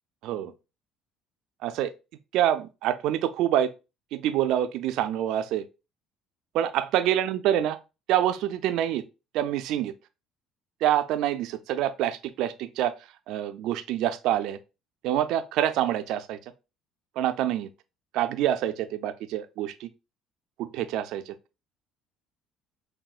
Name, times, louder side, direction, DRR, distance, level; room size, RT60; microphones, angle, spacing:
voice 1, 1.6-1.9 2.3-3.7 4.1-5.7 6.5-7.8 8.1-9.0 9.3-9.9 10.8-12.9 13.3-14.6 15.0-16.4 17.2-17.7 18.1-19.9 20.6-21.3, right 11 dB, 70° right, 0.4 m, -26 dB
5.4 x 2.2 x 2.4 m
hypercardioid pair, 65°, 0 cm